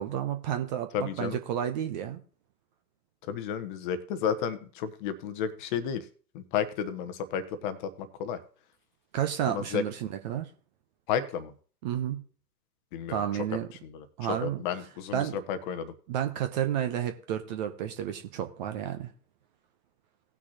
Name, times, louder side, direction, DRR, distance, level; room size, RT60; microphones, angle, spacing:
voice 1, 0.0-2.2 9.1-10.5 11.8-12.2 13.1-13.7 14.2-14.6 15.1-15.4 16.1-19.1, right 10 dB, 30° right, 7 dB, 0.7 m, -31 dB
voice 2, 0.9-1.4 3.3-6.0 6.3-8.4 9.4-9.8 11.1-11.5 12.9-13.2 13.8-15.9, left 8 dB, 30° left, 11 dB, 1.0 m, -32 dB
18.0 x 6.1 x 2.8 m, 0.42 s
figure-of-eight pair, 110°, 49 cm